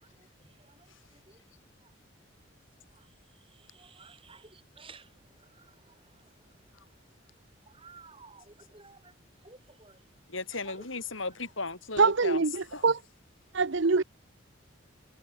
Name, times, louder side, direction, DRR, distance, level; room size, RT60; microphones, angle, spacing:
voice 1, 3.8-4.5 4.8-5.0 7.8-8.4 8.7-9.0 9.4-9.9 10.7-10.8, right 4 dB, 25° right, 5.9 m, -51 dB
voice 2, 10.3-12.4 12.7-12.8, left 3 dB, 75° left, 7.7 m, -36 dB
voice 3, 12.0-13.0 13.5-14.0, right 4 dB, 65° right, 0.8 m, -24 dB
head